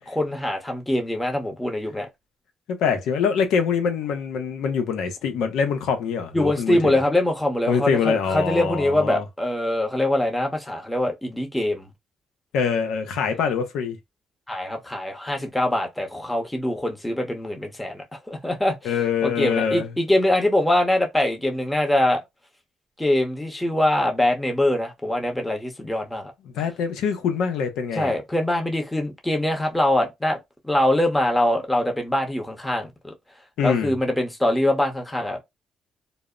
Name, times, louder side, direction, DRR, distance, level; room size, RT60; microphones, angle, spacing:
voice 1, 0.1-2.1 6.3-11.9 14.5-18.9 19.2-22.2 23.0-26.3 27.9-33.1 33.6-35.4, left 1 dB, 10° left, 0.8 m, -23 dB
voice 2, 2.7-7.0 7.7-9.2 12.5-14.0 18.8-19.9 26.5-28.2 33.6-33.9, left 6 dB, 85° left, 0.6 m, -24 dB
2.0 x 2.0 x 3.5 m
cardioid pair, 90°, 0 cm